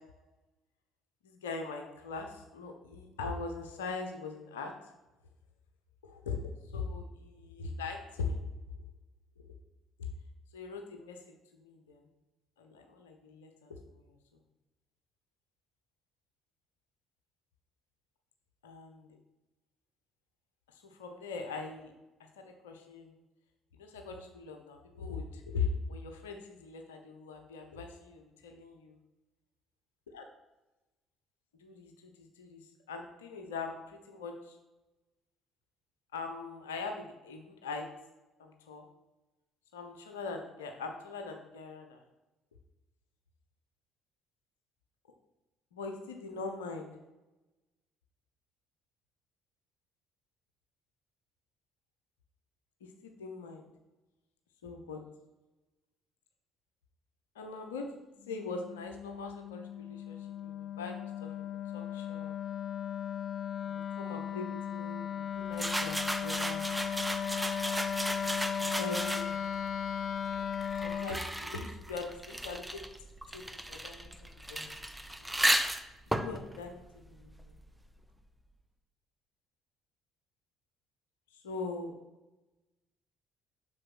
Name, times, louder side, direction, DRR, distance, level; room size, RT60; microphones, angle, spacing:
voice 1, 1.2-4.7 6.0-8.5 10.5-11.2 11.6-12.0 12.6-14.1 18.6-19.1 20.7-21.9 22.4-23.1 23.8-29.0 30.1-30.2 31.6-34.6 36.1-37.8 38.4-38.9 39.7-42.0 45.7-46.9 52.8-53.7 54.6-55.0 57.3-57.9 58.3-62.3 63.6-66.0 66.2-66.7 68.2-69.4 70.8-72.8 73.3-74.1 74.5-74.7 75.2-75.3 76.1-77.6 81.3-81.9, left 4 dB, 75° left, 4 dB, 0.9 m, -41 dB
Wind instrument woodwind instrument, 58.2-71.2, left 8 dB, 45° left, 0.3 m, -36 dB
sound 1, 65.5-69.5 70.3-77.7, right 1 dB, 5° right, 0.8 m, -35 dB
7.7 x 6.3 x 6.1 m, 1.1 s
figure-of-eight pair, 50°, 0 cm